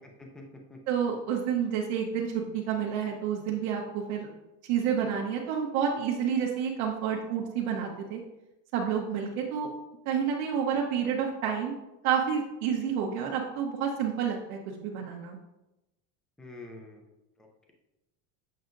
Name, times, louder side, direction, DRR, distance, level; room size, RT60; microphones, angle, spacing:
voice 1, 0.2-0.8 16.4-17.0 17.4-17.7, left 2 dB, ahead, 1 dB, 0.4 m, -47 dB
voice 2, 0.9-4.3 4.7-8.2 8.7-9.7 10.0-11.7 12.0-15.4, right 7 dB, 80° right, -2 dB, 1.1 m, -29 dB
7.8 x 5.6 x 2.6 m, 0.95 s
cardioid pair, 165°, 41 cm